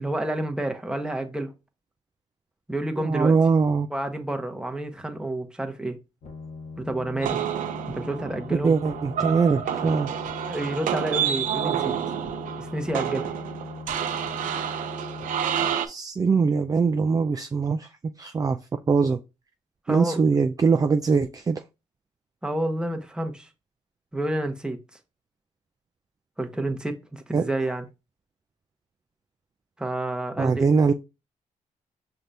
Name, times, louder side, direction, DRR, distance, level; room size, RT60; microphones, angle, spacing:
voice 1, 0.0-1.5 2.7-3.4 3.9-6.0 6.8-7.4 7.9-8.7 10.5-12.0 12.6-13.3 19.9-20.2 22.4-23.5 24.1-24.8 26.4-27.9 29.8-30.6, right 1 dB, 5° right, 0.9 m, -29 dB
voice 2, 3.0-3.9 8.5-10.1 15.8-17.9 18.2-18.6 18.9-19.2 19.9-21.6 27.3-27.5 30.4-30.9, right 5 dB, 25° right, 0.4 m, -22 dB
sound 1, 6.2-15.7, left 3 dB, 75° left, 1.3 m, -40 dB
sound 2, 7.2-15.9, right 9 dB, 85° right, 0.5 m, -29 dB
5.8 x 3.3 x 2.7 m
cardioid pair, 75°, 13 cm